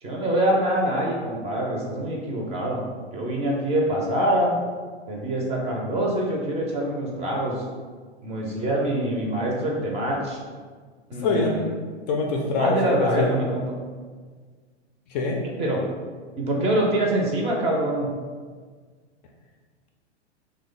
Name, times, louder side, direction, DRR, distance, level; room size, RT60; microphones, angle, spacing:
voice 1, 0.0-2.8 3.1-4.5 5.1-7.6 8.2-10.4 11.1-11.7 12.6-13.7 15.4-15.8 16.4-18.1, right 1 dB, 20° right, -2 dB, 0.6 m, -25 dB
voice 2, 11.2-11.6 12.1-13.4 15.1-15.4, left 3 dB, 40° left, 1 dB, 0.4 m, -24 dB
3.0 x 2.2 x 3.9 m, 1.5 s
hypercardioid pair, 110°, 34 cm